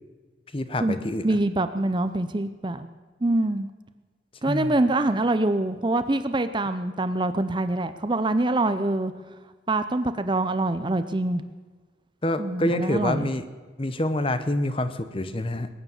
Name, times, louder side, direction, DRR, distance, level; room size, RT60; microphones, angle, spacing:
voice 1, 0.5-1.2 4.5-4.7 12.2-13.4 13.8-15.7, left 1 dB, 25° left, 11 dB, 0.8 m, -26 dB
voice 2, 1.2-2.9 3.2-3.7 4.4-9.1 9.7-11.4 12.4-13.3, right 2 dB, 25° right, 10 dB, 0.6 m, -25 dB
21.0 x 9.6 x 7.2 m, 1.4 s
head